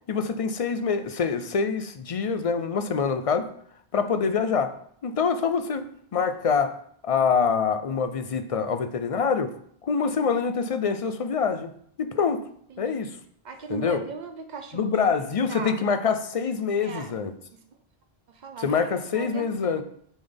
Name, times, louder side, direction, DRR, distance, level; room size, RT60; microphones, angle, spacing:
voice 1, 0.1-3.4 3.9-4.7 5.0-5.9 6.1-6.7 7.0-9.5 9.8-11.7 12.0-12.4 12.8-13.2 13.7-14.0 14.7-17.3 18.6-19.8, left 5 dB, 45° left, 9 dB, 0.5 m, -25 dB
voice 2, 12.7-13.0 13.4-15.2 15.5-15.8 16.8-17.1 17.5-17.6 18.3-18.8 19.1-19.8, right 4 dB, 45° right, 5 dB, 0.8 m, -38 dB
9.0 x 3.9 x 3.5 m, 0.64 s
omnidirectional pair, 1.1 m